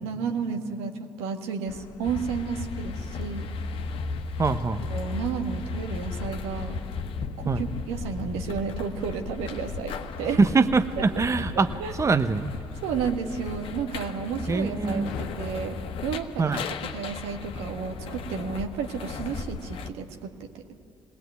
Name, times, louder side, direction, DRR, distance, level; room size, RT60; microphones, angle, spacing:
voice 1, 0.0-3.5 4.8-6.8 7.4-10.4 11.0-11.1 11.5-11.9 12.8-16.6 16.9-20.8, right 6 dB, 80° right, 4 dB, 1.6 m, -32 dB
sound 1, 1.6-3.5 6.1-8.5 10.3-12.6 14.5-17.6, left 3 dB, 85° left, 1.3 m, -45 dB
sound 2, 2.0-19.9, left 5 dB, 65° left, 1.2 m, -35 dB
voice 2, 4.4-4.8 7.5-7.6 10.4-11.7 12.0-12.5 14.5-15.1 16.4-16.7, right 4 dB, 30° right, 10 dB, 0.9 m, -23 dB
21.5 x 18.5 x 9.3 m, 2.7 s
hypercardioid pair, 55°, 10 cm